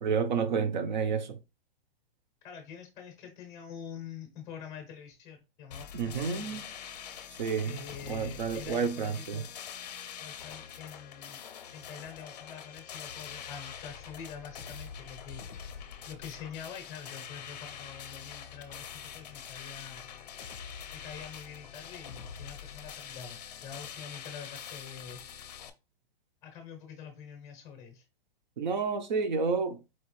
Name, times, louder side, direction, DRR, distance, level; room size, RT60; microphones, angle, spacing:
voice 1, 0.0-1.4 5.9-6.7 7.4-7.8 8.1-9.4 28.6-29.8, right 5 dB, 50° right, 0.7 m, -30 dB
voice 2, 2.4-6.6 7.6-9.5 10.2-11.4 11.7-15.4 16.1-20.1 20.9-25.2 26.4-28.0, left 7 dB, 10° left, 0.7 m, -46 dB
sound 1, 5.7-25.7, left 8 dB, 45° left, 0.6 m, -44 dB
4.5 x 3.0 x 3.1 m
hypercardioid pair, 175°, 29 cm